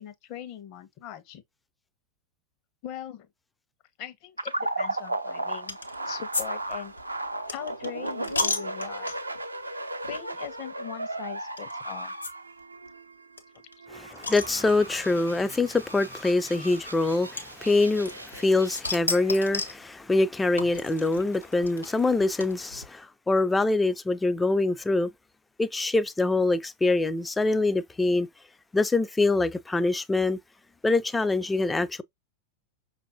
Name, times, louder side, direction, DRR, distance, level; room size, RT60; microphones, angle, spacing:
voice 1, 0.0-1.4 2.8-3.3 4.0-5.8 6.0-6.9 7.5-9.1 10.1-12.1 13.8-13.9, left 10 dB, 40° left, 0.8 m, -40 dB
sound 1, 4.4-18.9, right 2 dB, 85° right, 0.5 m, -36 dB
sound 2, 5.7-6.0 6.3-9.4 10.0-10.2 10.4-10.5 11.6-11.7 12.2-12.3 12.6-12.7 12.9-13.0 13.4-15.0 15.9-16.0 17.4-18.4 18.7-19.8 20.6-22.9, left 3 dB, 80° left, 0.8 m, -33 dB
voice 2, 13.9-25.1 25.6-28.3 28.7-30.4 30.8-32.0, left 2 dB, 10° left, 0.4 m, -24 dB
5.7 x 2.6 x 2.6 m
figure-of-eight pair, 90°, 0 cm